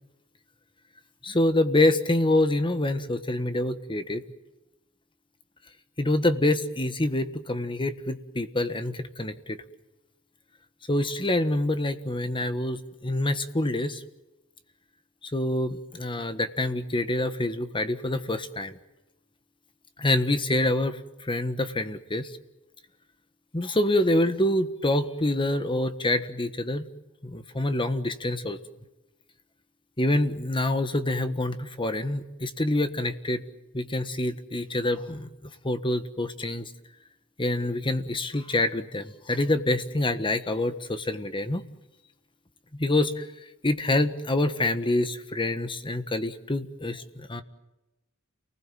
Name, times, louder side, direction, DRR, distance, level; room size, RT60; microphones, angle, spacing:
voice 1, 1.2-4.2 6.0-9.6 10.9-14.0 15.3-18.8 20.0-22.3 23.5-26.8 27.2-28.6 30.0-33.4 33.7-35.3 35.6-36.7 37.4-41.6 42.7-43.2 43.6-47.4, left 1 dB, 20° left, 10 dB, 1.4 m, -26 dB
29.0 x 20.0 x 7.6 m, 1.0 s
head